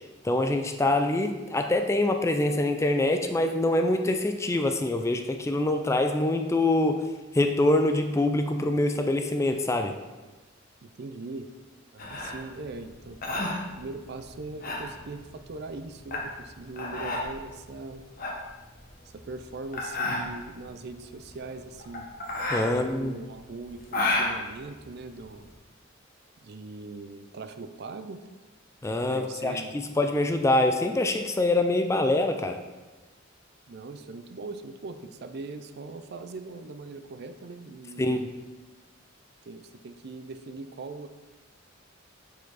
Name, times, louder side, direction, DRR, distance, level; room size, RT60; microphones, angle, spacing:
voice 1, 0.2-7.1 7.3-9.9 22.5-23.1 28.8-32.6 38.0-38.3, left 2 dB, 15° left, 5 dB, 0.3 m, -25 dB
voice 2, 10.8-11.5 11.9-18.0 19.1-22.1 22.5-25.4 26.4-28.2 29.1-29.8 33.7-38.2 39.5-41.1, right 3 dB, 50° right, 10 dB, 0.4 m, -41 dB
sound 1, 12.0-25.5, left 2 dB, 45° left, 1.1 m, -33 dB
6.7 x 5.0 x 4.0 m, 1.2 s
head